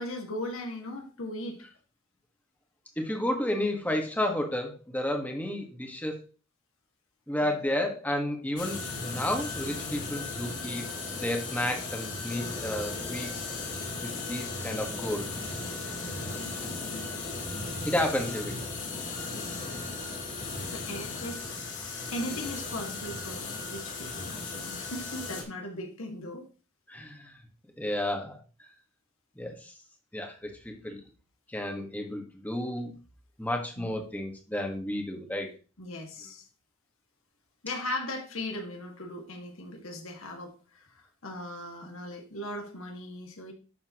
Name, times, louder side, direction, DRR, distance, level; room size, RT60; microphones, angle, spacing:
voice 1, 0.0-1.6 7.4-7.5 16.3-17.2 19.3-20.2 20.7-21.4 21.8-26.5 33.8-34.0 35.8-36.5 37.6-43.5, left 1 dB, 75° left, 2 dB, 2.1 m, -39 dB
voice 2, 3.0-6.2 7.3-10.8 11.2-13.4 14.0-15.6 17.8-18.7 19.3-19.6 26.9-27.4 27.8-28.7 29.3-29.8 30.1-31.0 31.5-32.9 33.4-35.5, left 1 dB, 10° left, 3 dB, 1.6 m, -32 dB
sound 1, 8.6-25.4, left 3 dB, 35° left, 2.5 m, -36 dB
11.5 x 7.2 x 3.0 m, 0.35 s
head